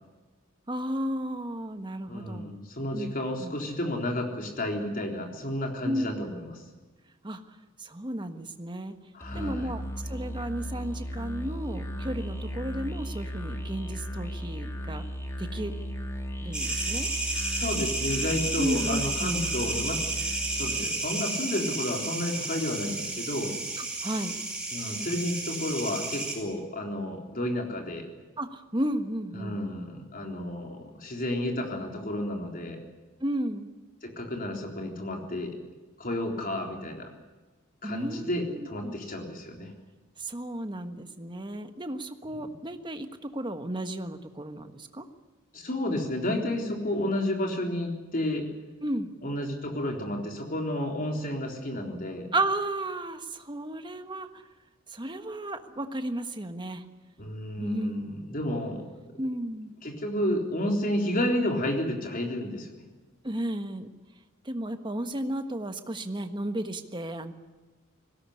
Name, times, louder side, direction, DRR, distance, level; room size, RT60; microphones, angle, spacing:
voice 1, 0.7-2.5 2.9-3.1 3.4-3.5 5.8-6.3 7.2-8.9 9.3-15.1 15.4-15.7 16.4-17.1 18.6-19.3 23.8-24.3 28.4-29.6 33.2-33.7 37.8-39.0 40.2-45.0 48.8-49.1 52.3-54.5 54.9-56.8 57.6-58.3 59.2-59.7 63.2-63.9 64.4-67.3, right 1 dB, 25° right, 8 dB, 1.4 m, -33 dB
voice 2, 2.1-6.5 9.1-9.7 17.4-20.0 20.5-23.6 24.7-28.1 29.3-32.8 34.0-35.6 36.0-37.1 37.8-39.7 45.5-48.5 49.2-52.3 57.2-58.8 59.8-62.8, left 1 dB, 45° left, 2 dB, 3.8 m, -31 dB
Musical instrument, 9.2-20.9, equal, 15° left, 2.2 m, -36 dB
sound 1, 16.5-26.3, right 2 dB, 5° right, 5.5 m, -32 dB
20.0 x 17.5 x 9.9 m, 1.2 s
head